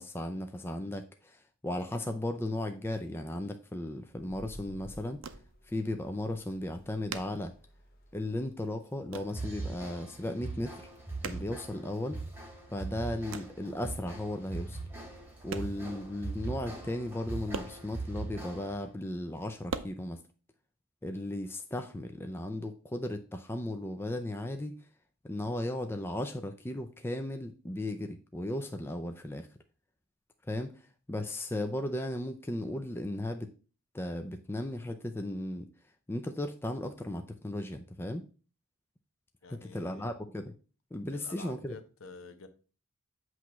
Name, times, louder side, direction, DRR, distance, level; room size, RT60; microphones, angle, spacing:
voice 1, 0.0-5.2 5.7-7.5 8.1-10.9 11.2-12.2 12.7-14.8 15.4-20.2 21.0-24.7 25.2-29.5 30.5-33.5 33.9-35.7 36.1-38.3 39.5-40.5 40.9-41.8, left 1 dB, 10° left, 6 dB, 0.4 m, -36 dB
sound 1, 2.6-3.0 4.1-8.5, equal, 40° left, 1.0 m, -53 dB
sound 2, 4.3-4.4 4.6-5.8 6.1-6.2 6.4-8.2 8.5-9.5 9.7-10.3 10.6-12.3 12.7-13.7 14.5-14.6 15.1-16.0 16.3-16.4 16.7-16.8 17.0-18.5 19.0-19.8, right 5 dB, 60° right, 0.6 m, -43 dB
sound 3, 9.3-18.9, right 3 dB, 10° right, 1.4 m, -41 dB
voice 2, 39.4-40.2 41.1-42.5, left 3 dB, 65° left, 8 dB, 0.9 m, -49 dB
8.1 x 3.1 x 5.8 m, 0.38 s
head